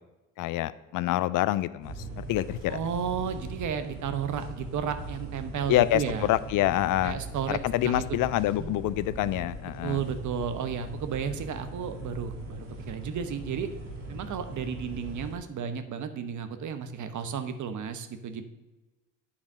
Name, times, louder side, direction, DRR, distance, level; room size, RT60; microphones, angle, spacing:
voice 1, 0.4-2.8 5.7-7.2 7.5-10.0, left 15 dB, 60° left, 17 dB, 0.5 m, -26 dB
sound 1, 1.8-15.4, right 2 dB, 90° right, 1.6 m, -40 dB
voice 2, 2.7-6.3 7.0-8.2 8.6-8.7 9.8-13.7 14.1-18.4, right 7 dB, 55° right, 9 dB, 0.9 m, -33 dB
8.8 x 4.1 x 6.0 m, 1.1 s
supercardioid pair, 60°, 35 cm